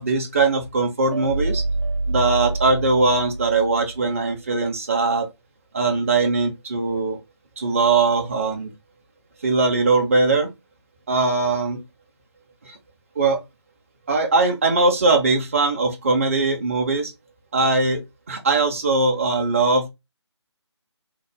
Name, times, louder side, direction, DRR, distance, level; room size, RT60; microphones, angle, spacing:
voice 1, 0.0-1.6 2.1-5.3 5.7-7.2 7.6-8.7 9.4-10.5 11.1-11.8 12.6-12.8 13.2-13.4 14.1-17.1 17.5-19.9, right 3 dB, 30° right, 0.7 m, -20 dB
sound 1, 1.1-4.3, right 2 dB, 85° right, 0.7 m, -27 dB
3.8 x 2.0 x 3.6 m
figure-of-eight pair, 155°, 15 cm